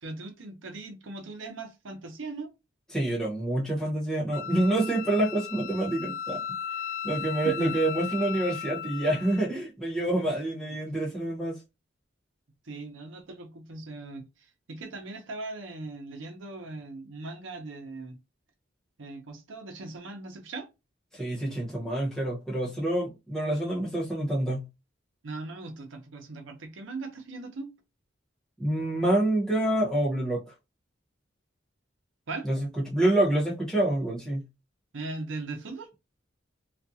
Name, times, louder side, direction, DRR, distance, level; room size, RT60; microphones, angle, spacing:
voice 1, 0.0-2.5 7.4-7.7 10.6-10.7 12.6-14.2 14.7-18.1 19.0-20.7 25.2-27.7 32.3-32.5 34.9-35.9, right 3 dB, 85° right, 0.7 m, -39 dB
voice 2, 2.9-6.4 7.0-11.6 21.1-24.6 28.6-30.5 32.4-34.4, right 1 dB, 5° left, 1.0 m, -27 dB
Wind instrument woodwind instrument, 4.3-9.5, left 8 dB, 80° left, 0.6 m, -36 dB
2.4 x 2.3 x 2.7 m
head